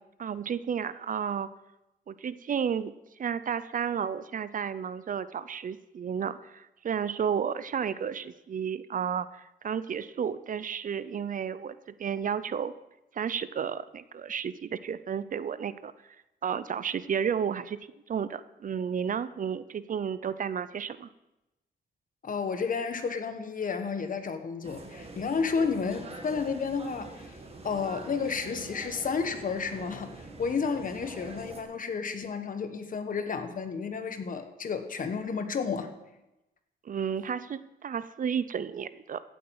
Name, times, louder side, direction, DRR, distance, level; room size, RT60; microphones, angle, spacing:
voice 1, 0.2-1.5 2.1-2.9 3.2-12.7 13.1-15.9 16.4-17.8 18.1-21.1 36.8-39.2, right 7 dB, 50° right, 15 dB, 0.5 m, -32 dB
voice 2, 22.2-27.4 27.6-35.9, left 5 dB, 50° left, 8 dB, 1.3 m, -31 dB
sound 1, 24.6-31.6, right 3 dB, 35° right, 1.8 m, -45 dB
16.0 x 8.1 x 4.7 m, 0.95 s
wide cardioid pair, 115°, 17 cm